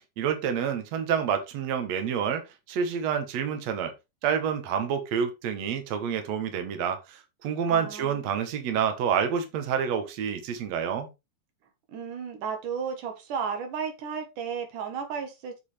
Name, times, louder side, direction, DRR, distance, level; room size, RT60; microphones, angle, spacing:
voice 1, 0.2-2.4 2.7-3.9 4.2-11.1, right 7 dB, 65° right, 2.5 m, -28 dB
voice 2, 7.7-8.3 11.9-15.5, right 6 dB, 85° right, 3.1 m, -34 dB
8.2 x 6.6 x 3.4 m
omnidirectional pair, 3.5 m